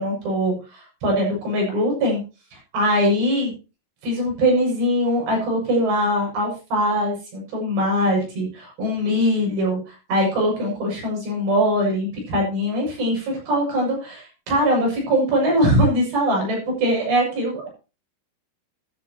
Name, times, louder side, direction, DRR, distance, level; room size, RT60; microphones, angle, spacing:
voice 1, 0.0-2.2 2.5-3.5 4.0-17.7, equal, 60° right, -1 dB, 9.0 m, -22 dB
13.0 x 13.0 x 3.0 m, 0.31 s
omnidirectional pair, 5.7 m